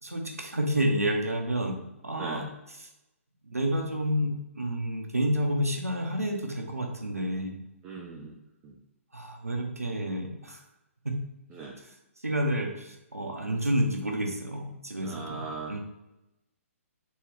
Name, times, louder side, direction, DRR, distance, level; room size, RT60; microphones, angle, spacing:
voice 1, 0.0-2.4 2.7-2.9 3.4-7.6 9.1-10.6 11.8-11.9 12.2-15.8, equal, 85° right, 2 dB, 0.8 m, -30 dB
voice 2, 7.8-8.3 8.6-8.7 11.5-11.8 15.0-15.7, right 4 dB, 20° right, -2 dB, 0.5 m, -39 dB
3.6 x 2.9 x 3.3 m, 0.94 s
figure-of-eight pair, 130°, 8 cm